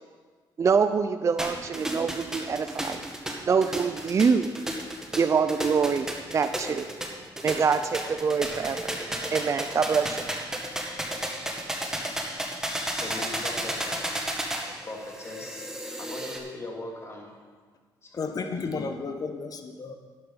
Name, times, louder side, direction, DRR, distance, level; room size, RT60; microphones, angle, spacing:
voice 1, 0.6-3.0 3.5-4.5 5.2-6.1 6.3-6.9 7.4-8.9 9.3-10.2, right 5 dB, 35° right, 10 dB, 0.5 m, -25 dB
sound 1, 1.4-16.4, right 1 dB, 5° right, 1.9 m, -33 dB
voice 2, 12.8-15.7 16.0-17.4 18.0-18.8, left 2 dB, 35° left, 0 dB, 2.8 m, -40 dB
voice 3, 18.2-19.9, left 4 dB, 50° left, 6 dB, 1.3 m, -32 dB
11.0 x 10.5 x 5.7 m, 1.5 s
cardioid pair, 95°, 8 cm